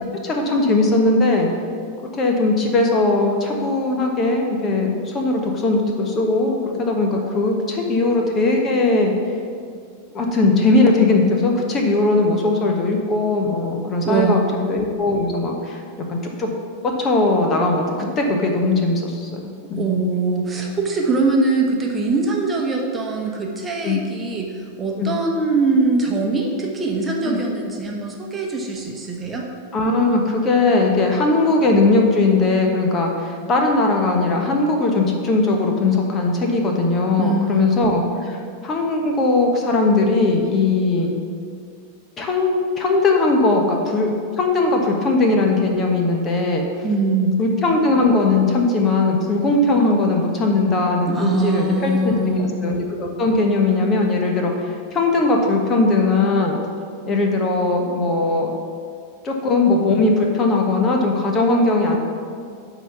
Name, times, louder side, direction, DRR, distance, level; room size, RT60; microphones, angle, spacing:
voice 1, 0.2-1.5 2.1-9.1 10.1-14.4 14.7-15.8 16.1-16.5 17.0-19.4 19.7-19.8 23.8-24.0 25.0-25.1 27.2-27.4 29.7-41.2 42.2-46.6 47.4-52.2 52.6-56.6 57.0-58.5 59.2-62.0, left 3 dB, 25° left, 2 dB, 1.3 m, -19 dB
voice 2, 14.0-14.6 19.7-29.4 37.2-37.9 46.8-47.4 51.1-52.6, right 3 dB, 15° right, 0 dB, 1.2 m, -22 dB
10.5 x 4.0 x 7.0 m, 2.2 s
figure-of-eight pair, 90°, 0 cm